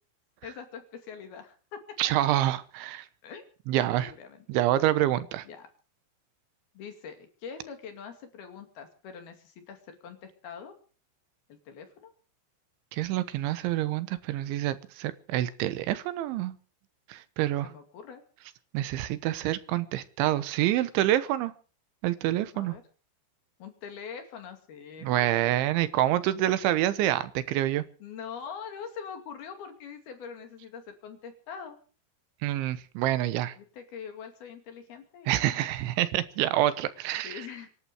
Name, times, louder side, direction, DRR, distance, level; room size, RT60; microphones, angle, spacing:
voice 1, 0.4-2.0 3.2-3.4 3.7-4.5 5.4-5.7 6.7-10.8 11.5-12.1 17.6-18.2 22.5-22.8 23.6-25.5 28.0-31.8 33.6-35.7 36.6-36.7 37.2-37.7, left 6 dB, 60° left, 4.1 m, -43 dB
voice 2, 2.0-3.0 3.7-4.1 4.5-5.4 12.9-16.5 17.1-17.7 18.7-21.5 22.0-22.8 25.0-27.8 32.4-33.5 35.3-37.3, right 13 dB, 85° right, 3.4 m, -27 dB
25.5 x 11.5 x 5.0 m
omnidirectional pair, 5.4 m